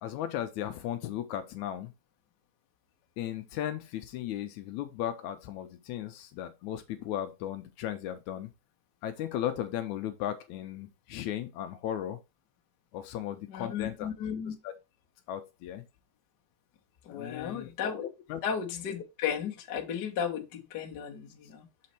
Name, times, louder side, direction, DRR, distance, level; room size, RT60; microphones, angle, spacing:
voice 1, 0.0-1.9 3.2-8.5 9.0-12.2 12.9-14.1 14.5-14.8 15.3-15.8 17.1-17.7 18.3-18.4, left 11 dB, 75° left, 1.9 m, -36 dB
voice 2, 13.5-14.6 17.0-18.1 18.4-21.7, left 8 dB, 55° left, 1.1 m, -34 dB
6.7 x 4.2 x 4.3 m
omnidirectional pair, 3.6 m